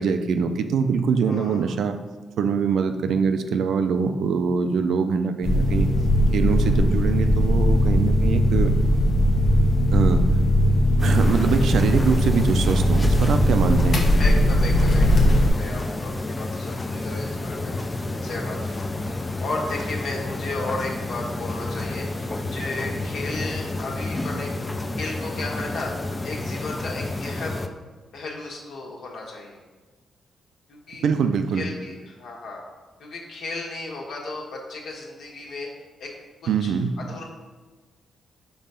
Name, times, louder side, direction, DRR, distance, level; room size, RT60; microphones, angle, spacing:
voice 1, 0.0-2.0 2.4-5.9 6.3-8.7 9.9-10.2 11.0-14.0 31.0-31.7 36.5-36.9, right 6 dB, 80° right, 8 dB, 0.5 m, -23 dB
voice 2, 1.2-1.8 14.1-17.7 18.2-18.9 19.4-24.5 25.0-25.9 26.2-27.7 28.1-29.6 30.7-31.1 31.5-32.6 33.0-35.7 36.0-36.1 36.6-36.7 37.1-37.2, left 2 dB, 75° left, -1 dB, 1.6 m, -34 dB
sound 1, 5.4-15.5, equal, 55° left, 0.9 m, -19 dB
sound 2, 11.0-27.7, left 2 dB, 20° left, 0.4 m, -30 dB
5.5 x 4.1 x 5.7 m, 1.3 s
cardioid pair, 110°, 0 cm